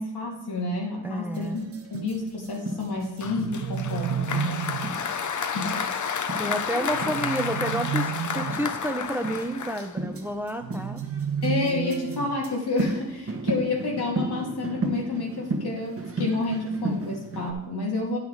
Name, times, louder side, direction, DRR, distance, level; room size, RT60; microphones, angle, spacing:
voice 1, 0.0-4.8 5.5-5.7 7.0-7.1 11.4-18.2, left 3 dB, 85° left, -2 dB, 2.6 m, -29 dB
voice 2, 1.0-1.6 6.4-11.0, right 1 dB, 5° right, 6 dB, 0.9 m, -30 dB
sound 1, 1.3-17.5, right 2 dB, 35° right, 1.3 m, -35 dB
Applause, 3.2-10.3, left 6 dB, 50° left, 0.8 m, -31 dB
sound 2, 3.2-5.0 6.9-8.8 10.6-12.5, right 8 dB, 65° right, 0.6 m, -31 dB
9.3 x 5.8 x 4.8 m, 0.85 s
cardioid pair, 60°, 37 cm